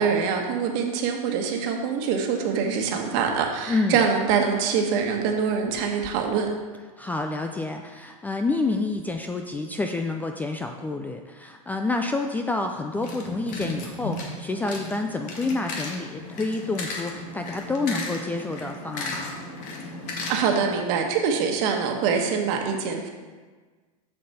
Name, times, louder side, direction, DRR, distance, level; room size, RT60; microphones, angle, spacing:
voice 1, 0.0-6.5 20.3-23.1, right 6 dB, 55° right, 3 dB, 1.3 m, -24 dB
voice 2, 3.7-4.0 7.0-19.4, left 3 dB, 10° left, 4 dB, 0.4 m, -28 dB
sound 1, 12.9-20.8, left 2 dB, 40° left, 1.7 m, -35 dB
7.4 x 6.7 x 4.2 m, 1.4 s
supercardioid pair, 130°, 19 cm